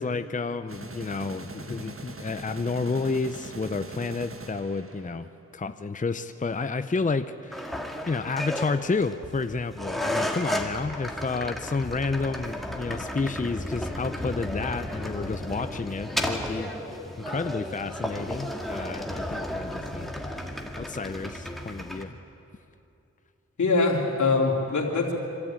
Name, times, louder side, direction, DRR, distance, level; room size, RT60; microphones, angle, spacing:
voice 1, 0.0-7.8 8.1-16.7 17.2-20.1 20.8-22.2, left 4 dB, 25° left, 10 dB, 0.7 m, -30 dB
sound 1, 0.7-5.5, right 3 dB, 45° right, 1.4 m, -42 dB
sound 2, 7.5-22.0, left 1 dB, ahead, 2.3 m, -33 dB
voice 2, 23.6-25.1, left 3 dB, 80° left, -1 dB, 3.1 m, -23 dB
25.5 x 13.0 x 8.9 m, 2.8 s
cardioid pair, 45°, 29 cm